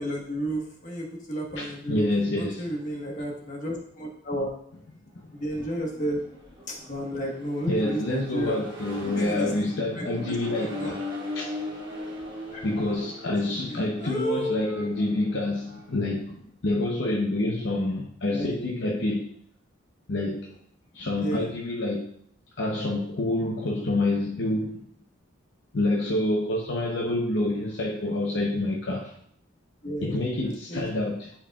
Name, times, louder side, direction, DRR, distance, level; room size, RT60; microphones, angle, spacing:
voice 1, 0.0-4.5 5.3-6.2 6.7-8.6 9.1-9.5 9.9-10.4 10.6-10.9 12.5-12.6 13.3-13.4 13.7-14.9 18.3-18.6 21.2-21.6 29.8-30.1 30.4-30.9, equal, 40° left, 0 dB, 1.3 m, -32 dB
voice 2, 1.6-2.7 5.1-5.3 7.7-11.0 11.3-11.5 12.6-19.3 20.1-20.6 20.9-22.1 22.6-24.8 25.7-29.1 30.0-31.3, left 2 dB, 65° left, -1 dB, 0.8 m, -27 dB
Accelerating revving vroom, 5.5-15.9, left 2 dB, 25° right, 1.8 m, -39 dB
10.0 x 4.7 x 2.3 m, 0.67 s
head